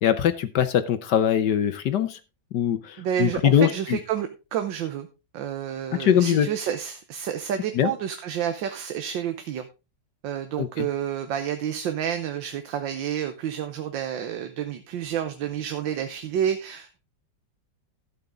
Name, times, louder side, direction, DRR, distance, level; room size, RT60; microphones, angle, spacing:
voice 1, 0.0-2.2 2.5-4.0 5.9-6.5 7.7-7.9 10.6-10.8, left 9 dB, 65° left, 12 dB, 1.4 m, -22 dB
voice 2, 3.0-5.1 5.3-9.7 10.2-17.0, right 9 dB, 80° right, 8 dB, 1.6 m, -29 dB
12.5 x 8.4 x 3.7 m, 0.29 s
omnidirectional pair, 2.0 m